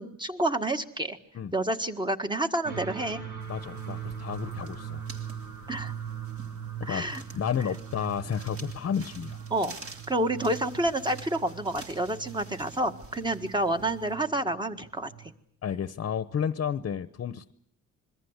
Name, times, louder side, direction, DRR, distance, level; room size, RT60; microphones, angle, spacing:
voice 1, 0.0-1.2 1.5-3.2 5.7-5.9 6.9-7.2 9.5-9.7 10.1-15.3, right 1 dB, 15° right, 7 dB, 1.8 m, -29 dB
sound 1, 2.6-15.3, right 8 dB, 70° right, 5.6 m, -41 dB
sound 2, 3.4-14.2, right 3 dB, 45° right, 3.4 m, -50 dB
voice 2, 3.5-5.0 6.8-9.4 15.6-17.5, left 8 dB, 45° left, 14 dB, 1.0 m, -32 dB
26.5 x 22.0 x 8.2 m, 0.65 s
wide cardioid pair, 135°, 31 cm